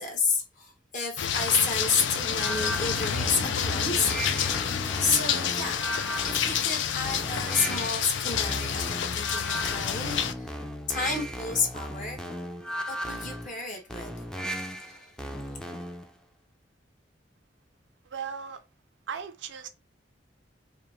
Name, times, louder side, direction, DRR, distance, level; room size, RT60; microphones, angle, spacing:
voice 1, 0.0-4.1 5.0-5.8 6.3-10.6 10.9-12.2 12.9-14.2 14.6-15.1, left 4 dB, 45° left, 1.3 m, -30 dB
sound 1, 1.2-10.3, left 8 dB, 75° left, 0.5 m, -29 dB
sound 2, 2.3-16.1, equal, 5° left, 0.5 m, -36 dB
voice 2, 18.1-18.6 19.1-19.7, right 7 dB, 70° right, 0.5 m, -36 dB
4.9 x 2.1 x 3.0 m
head